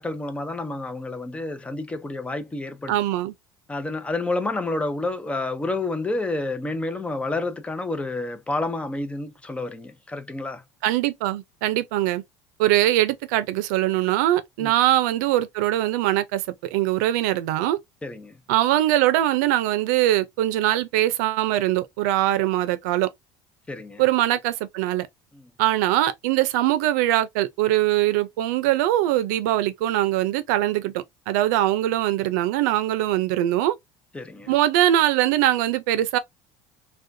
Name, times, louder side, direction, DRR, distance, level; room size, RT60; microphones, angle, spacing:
voice 1, 0.0-3.0 3.7-10.6 14.6-14.7 18.0-18.4 23.7-24.0 25.3-25.5 34.1-34.5, left 2 dB, 15° left, 0.7 m, -29 dB
voice 2, 2.9-3.3 10.8-12.2 12.6-17.8 18.5-23.1 24.0-25.1 25.6-33.7 34.5-36.2, right 14 dB, 80° right, 0.6 m, -22 dB
3.5 x 2.3 x 2.6 m
supercardioid pair, 90°, 9 cm